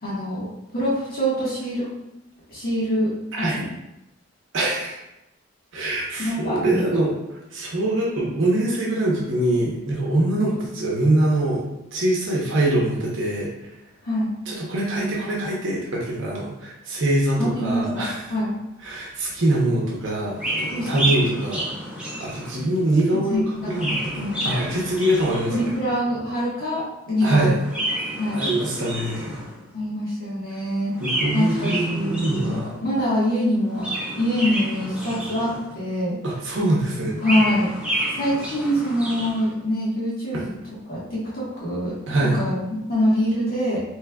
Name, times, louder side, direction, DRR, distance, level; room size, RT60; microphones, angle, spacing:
voice 1, 0.0-0.5 0.7-1.9 2.5-3.1 3.5-3.7 6.2-6.8 10.4-10.6 14.0-14.3 17.4-18.6 20.7-21.2 23.3-24.4 25.5-27.5 28.2-28.4 29.7-31.0 31.3-36.2 37.2-37.7 38.1-40.5 40.9-42.0 42.3-43.8, equal, 50° left, -8 dB, 1.3 m, -25 dB
voice 2, 3.3-3.6 4.5-5.0 5.7-7.1 7.5-11.6 11.9-13.7 14.5-18.2 18.8-21.7 22.2-23.4 23.7-25.7 27.2-27.5 28.3-29.4 31.0-32.7 36.2-37.2 40.3-40.4 42.1-42.4, right 1 dB, 65° right, -3 dB, 0.8 m, -23 dB
Chirp tweet, 20.3-22.8 23.5-25.9 27.5-29.7 30.9-32.8 33.6-35.9 36.9-39.5, right 1 dB, 5° right, 0.6 m, -30 dB
4.7 x 3.1 x 2.3 m, 0.90 s
head